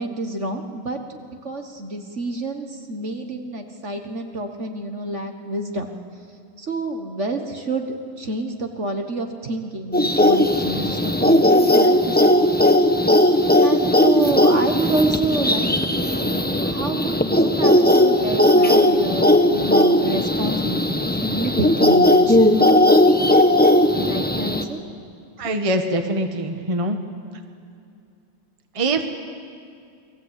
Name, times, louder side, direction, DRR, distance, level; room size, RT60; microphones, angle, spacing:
voice 1, 0.0-5.9 6.6-12.5 13.6-22.4 23.8-24.8 25.4-25.5, right 2 dB, 40° right, 5 dB, 1.6 m, -28 dB
sound 1, 9.9-24.6, left 1 dB, 5° left, 0.8 m, -17 dB
voice 2, 25.4-27.0 28.7-29.1, right 1 dB, 20° right, 5 dB, 1.2 m, -23 dB
29.0 x 21.0 x 8.3 m, 2.4 s
omnidirectional pair, 2.0 m